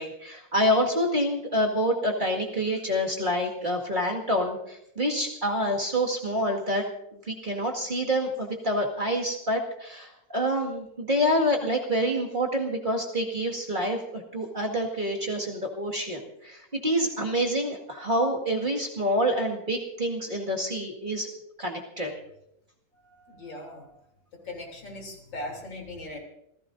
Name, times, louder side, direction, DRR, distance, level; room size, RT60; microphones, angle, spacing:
voice 1, 0.0-6.9 7.3-21.3 21.6-22.1, equal, 25° right, -1 dB, 2.0 m, -27 dB
voice 2, 23.0-24.0 24.4-26.2, left 1 dB, 80° left, 0 dB, 3.9 m, -39 dB
28.0 x 16.5 x 2.6 m, 0.79 s
omnidirectional pair, 2.0 m